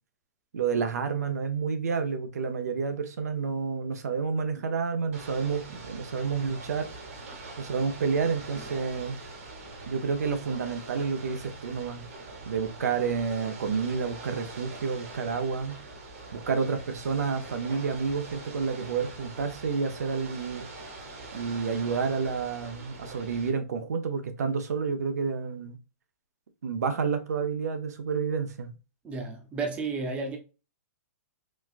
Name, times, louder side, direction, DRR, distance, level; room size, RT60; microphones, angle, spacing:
voice 1, 0.5-6.9 7.6-9.2 9.9-12.0 12.5-15.8 16.3-20.6 21.3-25.8 26.6-28.8, right 5 dB, 80° right, 0.7 m, -29 dB
Ocean / Boat Water vehicle, 5.1-23.5, right 3 dB, 55° right, 1.2 m, -43 dB
voice 2, 29.0-30.4, right 4 dB, 15° right, 0.7 m, -32 dB
4.2 x 2.3 x 2.4 m
hypercardioid pair, 150°, 9 cm